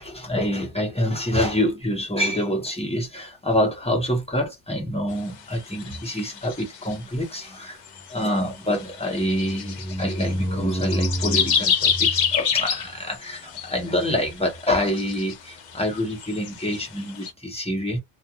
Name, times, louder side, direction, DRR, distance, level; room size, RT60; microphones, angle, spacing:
voice 1, 0.0-7.8 8.1-18.0, equal, 5° left, 0.8 m, -26 dB
sound 1, 5.5-7.2 7.9-8.2 8.7-10.3 10.7-17.3, left 7 dB, 60° left, 0.5 m, -27 dB
2.4 x 2.4 x 2.8 m
omnidirectional pair, 1.2 m